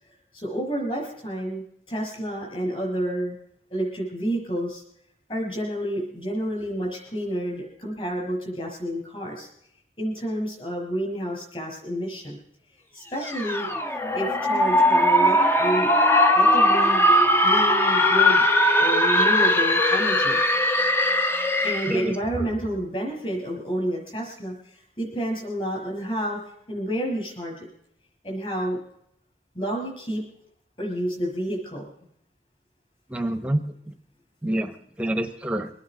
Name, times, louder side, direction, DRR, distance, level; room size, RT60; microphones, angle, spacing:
voice 1, 0.3-3.3 3.7-4.8 5.3-9.5 10.0-12.4 12.9-13.7 14.1-15.9 16.3-17.1 17.4-18.4 18.8-20.4 21.6-26.4 26.7-27.7 28.2-28.8 29.5-30.2 30.8-31.9, equal, 30° left, 0 dB, 5.7 m, -29 dB
sound 1, 13.2-22.1, left 1 dB, 15° left, 0.8 m, -20 dB
voice 2, 33.1-33.9 34.4-35.7, right 1 dB, 5° right, 8 dB, 1.0 m, -27 dB
23.0 x 9.5 x 5.1 m, 0.72 s
head